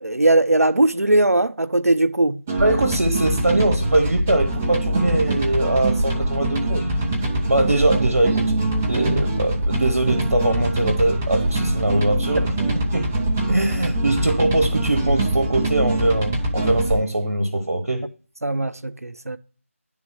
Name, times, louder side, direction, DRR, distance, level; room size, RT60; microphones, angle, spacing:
voice 1, 0.0-2.4 12.4-12.5 18.4-19.4, right 2 dB, 90° right, 0.6 m, -19 dB
sound 1, 2.5-17.0, right 1 dB, 5° right, 0.4 m, -23 dB
voice 2, 2.6-6.8 7.5-8.5 8.9-12.5 12.9-13.0 13.5-18.0, right 2 dB, 60° right, 1.2 m, -22 dB
10.5 x 3.6 x 6.3 m
figure-of-eight pair, 165°, 8 cm